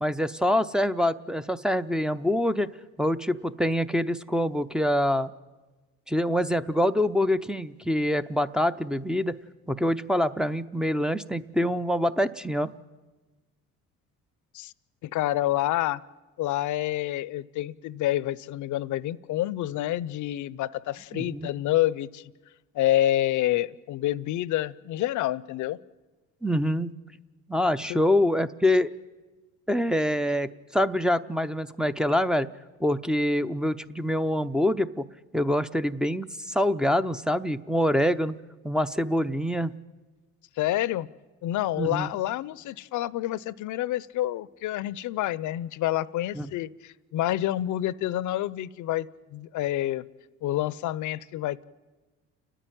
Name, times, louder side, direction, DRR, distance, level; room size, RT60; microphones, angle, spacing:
voice 1, 0.0-2.7 3.0-5.3 6.1-9.4 9.7-12.7 21.1-21.5 26.4-27.0 27.5-28.9 29.7-32.5 32.8-35.1 35.3-38.3 38.6-39.7 41.8-42.1 46.3-46.5, left 1 dB, ahead, 7 dB, 0.6 m, -25 dB
voice 2, 15.0-16.0 16.4-22.3 22.7-25.8 27.9-28.0 40.6-41.1 41.4-50.0 50.4-51.6, left 14 dB, 60° left, 20 dB, 0.7 m, -28 dB
30.0 x 10.0 x 9.2 m, 1.2 s
supercardioid pair, 90°, 34 cm